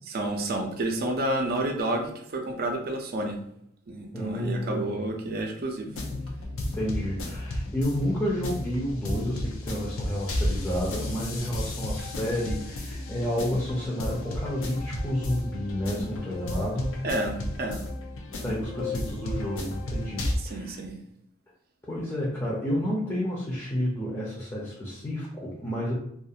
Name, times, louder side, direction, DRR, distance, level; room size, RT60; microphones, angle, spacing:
voice 1, 0.1-3.4 3.9-5.9 17.0-17.8 20.4-20.9, right 1 dB, 50° right, 3 dB, 0.5 m, -30 dB
voice 2, 4.1-5.0 6.7-17.0 18.3-20.7 21.9-25.9, equal, 15° left, -5 dB, 0.5 m, -30 dB
sound 1, 5.9-20.4, left 1 dB, 85° left, 0.5 m, -33 dB
2.4 x 2.3 x 2.7 m, 0.75 s
head